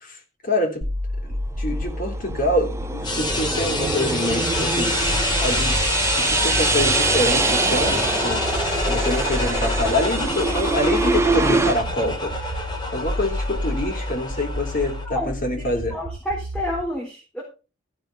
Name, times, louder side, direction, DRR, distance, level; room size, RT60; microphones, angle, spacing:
voice 1, 0.0-0.9 1.2-5.8 6.2-8.4 8.8-12.5 12.9-16.0, left 1 dB, 45° left, 3.3 m, -26 dB
sound 1, 0.8-16.8, left 1 dB, 55° right, 2.5 m, -30 dB
sound 2, 1.7-11.8, right 3 dB, 15° right, 0.6 m, -25 dB
sound 3, 3.0-15.1, left 1 dB, 25° left, 2.6 m, -27 dB
voice 2, 15.9-17.4, equal, 5° left, 3.9 m, -29 dB
14.5 x 5.9 x 5.3 m
head